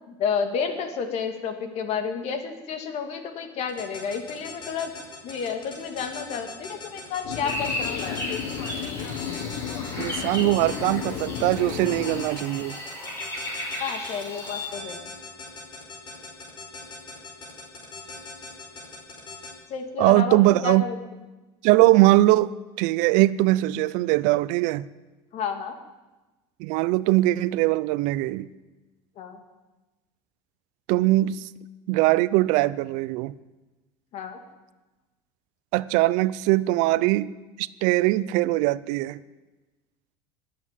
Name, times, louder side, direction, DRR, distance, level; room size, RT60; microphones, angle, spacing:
voice 1, 0.1-4.9 5.2-7.7 8.0-8.2 13.8-15.0 19.7-21.0 25.3-25.8 29.2-29.4 34.1-34.4, left 6 dB, 55° left, 7 dB, 2.3 m, -30 dB
sound 1, 3.7-19.5, left 3 dB, 35° left, 4.9 m, -40 dB
sound 2, 7.2-12.3, left 9 dB, 75° left, 1.3 m, -33 dB
sound 3, 7.4-14.7, left 1 dB, 20° left, 5.5 m, -35 dB
voice 2, 10.0-12.8 20.0-20.9 21.6-22.5 22.8-24.9 26.6-28.5 30.9-31.4 31.9-33.3 35.7-37.3 37.6-39.2, right 18 dB, 70° right, 18 dB, 0.6 m, -21 dB
22.0 x 8.6 x 7.5 m, 1.1 s
supercardioid pair, 125°, 13 cm